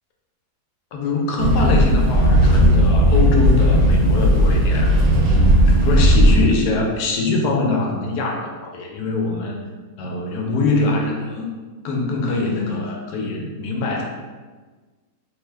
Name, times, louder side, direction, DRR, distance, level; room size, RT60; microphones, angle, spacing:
voice 1, 0.9-4.9 5.2-9.6 10.0-11.5 11.8-14.0, left 3 dB, 80° left, 0 dB, 1.1 m, -23 dB
sound 1, 1.4-6.4, equal, 70° right, 1.1 m, -15 dB
3.1 x 2.1 x 3.3 m, 1.4 s
omnidirectional pair, 1.7 m